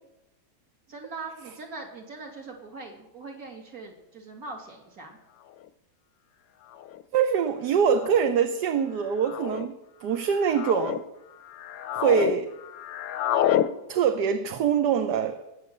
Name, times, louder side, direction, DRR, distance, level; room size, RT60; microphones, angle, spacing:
voice 1, 0.9-5.2, right 3 dB, 50° right, 2 dB, 2.9 m, -41 dB
sound 1, 5.6-5.7 6.7-7.0 7.9-8.3 9.2-9.7 10.3-11.0 11.5-12.3 12.6-13.7, left 11 dB, 90° left, 1.5 m, -28 dB
voice 2, 7.1-11.0 11.9-12.5 13.9-15.4, right 7 dB, 65° right, 8 dB, 1.4 m, -24 dB
19.0 x 8.0 x 6.7 m, 0.96 s
omnidirectional pair, 2.0 m